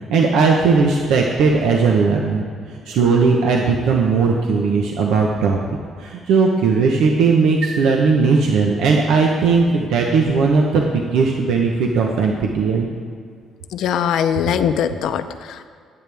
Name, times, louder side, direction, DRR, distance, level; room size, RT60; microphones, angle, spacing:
voice 1, 0.1-2.4 2.7-5.6 6.0-12.9, right 4 dB, 85° right, 0 dB, 1.0 m, -17 dB
voice 2, 13.7-15.7, left 8 dB, 75° left, 9 dB, 0.7 m, -21 dB
20.5 x 8.9 x 3.5 m, 2.2 s
cardioid pair, 140°, 0 cm